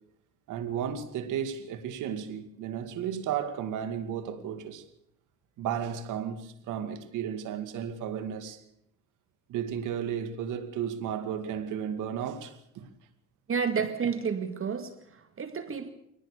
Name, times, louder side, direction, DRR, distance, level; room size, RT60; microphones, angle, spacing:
voice 1, 0.5-4.9 5.6-8.6 9.5-12.9, right 8 dB, 90° right, 2.4 m, -34 dB
voice 2, 13.5-15.9, right 6 dB, 45° right, 2.2 m, -31 dB
24.0 x 19.0 x 6.7 m
cardioid pair, 90°, 30 cm